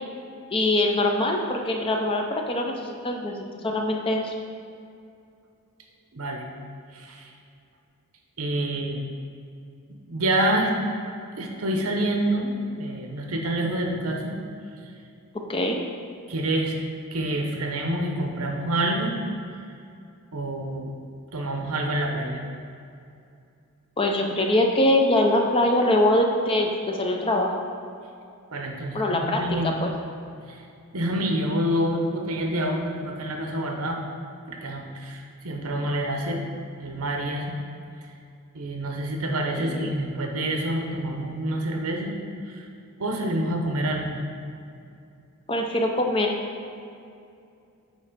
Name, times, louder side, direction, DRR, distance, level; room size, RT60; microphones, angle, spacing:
voice 1, 0.5-4.3 15.5-15.8 24.0-27.5 28.9-29.9 39.6-39.9 45.5-46.4, left 1 dB, 25° left, 2 dB, 0.6 m, -23 dB
voice 2, 6.1-6.4 6.9-7.3 8.4-9.0 10.1-10.7 11.4-14.4 16.3-16.8 17.1-19.2 20.3-20.9 21.3-22.4 28.5-29.8 30.5-30.6 30.9-34.0 34.5-36.4 36.8-37.5 38.5-42.1 42.5-42.6 43.0-44.1, right 1 dB, 80° right, 2 dB, 0.9 m, -27 dB
8.9 x 3.2 x 5.1 m, 2.5 s
head